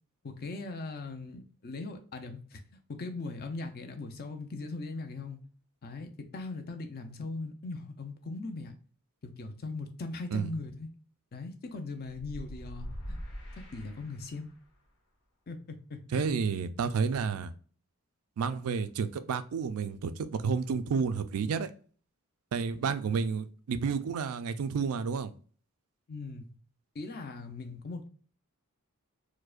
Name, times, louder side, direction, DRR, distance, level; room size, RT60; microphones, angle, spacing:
voice 1, 0.2-2.6 2.9-5.4 5.8-8.7 9.2-10.9 11.3-13.2 13.7-14.5 15.5-16.3 22.8-22.9 26.1-26.5 26.9-28.1, left 3 dB, 45° left, 0.5 m, -40 dB
sound 1, 12.1-14.7, equal, 80° left, 1.4 m, -43 dB
voice 2, 16.1-17.5 18.4-21.7 22.5-25.3, right 5 dB, 70° right, 0.4 m, -30 dB
4.6 x 2.1 x 2.4 m
head